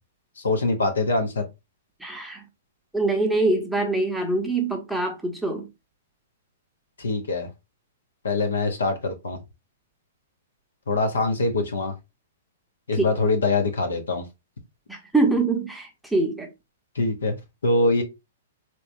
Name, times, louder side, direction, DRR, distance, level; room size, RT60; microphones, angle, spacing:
voice 1, 0.4-1.4 7.0-7.5 8.2-9.4 10.9-11.9 12.9-14.3 16.9-17.4 17.6-18.0, left 3 dB, 80° left, 0.9 m, -23 dB
voice 2, 2.0-2.4 2.9-5.7 13.0-13.1 14.9-16.5, right 2 dB, ahead, 0.9 m, -24 dB
3.3 x 3.0 x 2.6 m
hypercardioid pair, 120°, 0 cm